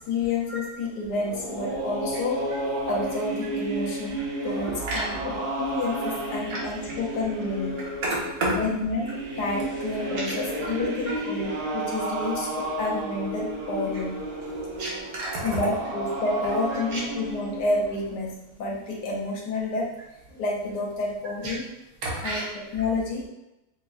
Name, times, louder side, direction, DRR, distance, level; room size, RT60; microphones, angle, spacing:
voice 1, 0.0-2.4 2.9-7.8 8.5-14.2 15.4-19.9 20.4-21.7 22.2-23.3, left 2 dB, 90° left, -2 dB, 1.2 m, -29 dB
sound 1, 1.1-18.1, right 1 dB, 50° right, 0.3 m, -32 dB
voice 2, 8.1-8.6 14.8-15.4 16.9-17.0 20.3-20.4 21.4-21.5 22.0-22.4, right 1 dB, 65° right, -4 dB, 1.2 m, -29 dB
3.4 x 2.0 x 2.3 m, 0.91 s
omnidirectional pair, 1.7 m